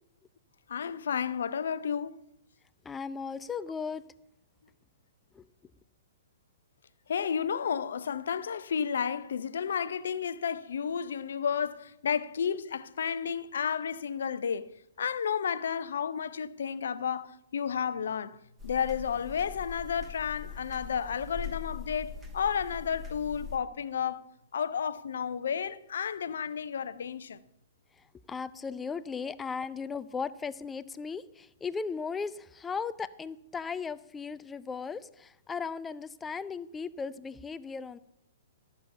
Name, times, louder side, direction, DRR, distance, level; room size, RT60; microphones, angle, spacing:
voice 1, 0.7-2.2 7.1-14.7 15.0-18.4 18.6-24.3 24.5-27.4, left 7 dB, 60° left, 0.6 m, -32 dB
voice 2, 2.8-4.0 5.3-5.5 28.3-38.0, left 5 dB, 15° left, 0.5 m, -37 dB
sound 1, 18.6-23.6, left 6 dB, 10° right, 1.7 m, -42 dB
13.5 x 7.0 x 6.7 m
figure-of-eight pair, 115°, 0 cm